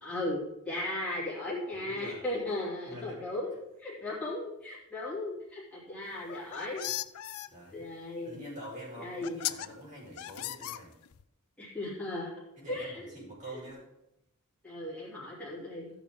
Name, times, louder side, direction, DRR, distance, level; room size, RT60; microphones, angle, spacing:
voice 1, 0.0-6.9 7.7-8.4 9.0-9.4 11.6-12.3 12.7-13.0 13.5-13.6 14.6-15.9, left 1 dB, 5° left, -9 dB, 2.6 m, -36 dB
voice 2, 1.7-2.2 2.9-3.2 6.8-6.9 7.5-7.9 8.2-10.9 12.6-13.8, equal, 35° right, -6 dB, 4.5 m, -45 dB
sound 1, 6.2-7.5 8.6-8.7 9.2-9.7 10.2-11.2, left 14 dB, 70° left, 0.4 m, -37 dB
13.5 x 7.1 x 3.6 m, 0.86 s
head